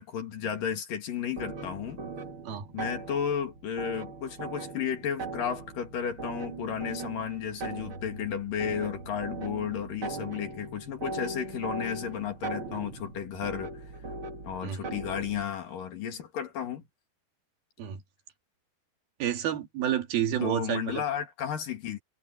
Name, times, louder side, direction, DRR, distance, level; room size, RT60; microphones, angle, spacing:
voice 1, 0.0-2.0 2.7-13.7 14.4-16.8 20.4-22.0, left 8 dB, 60° left, 3.6 m, -33 dB
sound 1, 1.4-15.5, right 3 dB, 35° right, 2.5 m, -39 dB
voice 2, 19.2-21.0, right 10 dB, 65° right, 3.9 m, -29 dB
omnidirectional pair, 4.8 m